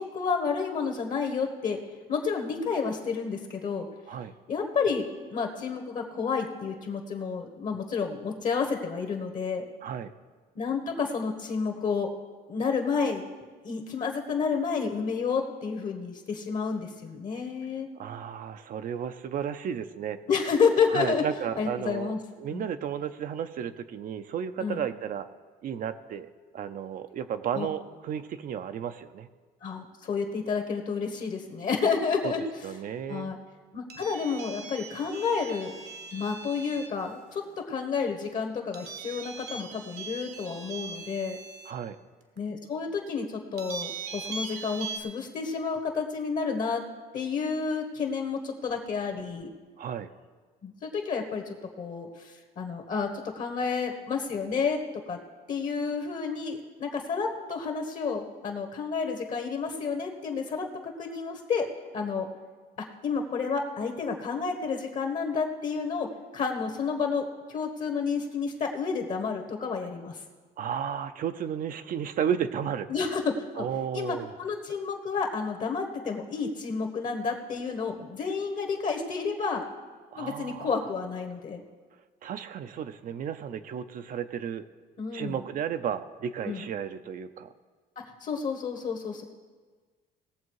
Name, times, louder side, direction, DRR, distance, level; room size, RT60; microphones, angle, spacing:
voice 1, 0.0-1.8 2.1-3.9 4.5-5.0 5.3-9.6 10.5-12.1 12.5-13.2 13.6-17.9 20.3-21.2 21.6-22.2 22.5-22.7 24.6-24.8 27.5-27.7 29.6-32.4 33.1-33.4 33.7-35.7 36.1-41.4 42.4-46.8 47.1-49.5 50.6-54.8 55.1-55.2 55.5-61.7 61.9-62.3 63.0-70.2 72.9-73.6 73.9-79.6 80.1-81.6 85.0-85.4 86.4-86.6 88.0-89.2, left 5 dB, 50° left, 3 dB, 1.4 m, -30 dB
voice 2, 9.8-10.1 18.0-20.2 20.9-22.1 22.4-25.3 25.6-29.3 32.2-32.3 32.6-33.3 41.7-42.0 49.8-50.1 70.6-72.9 73.6-74.3 80.1-80.9 82.2-84.6 85.1-87.5, right 8 dB, 55° right, 9 dB, 0.6 m, -33 dB
sound 1, 33.9-37.0 38.7-41.7 42.4-42.5 43.6-45.0, right 4 dB, 75° right, 1.3 m, -40 dB
19.0 x 7.1 x 4.8 m, 1.4 s
cardioid pair, 110°, 17 cm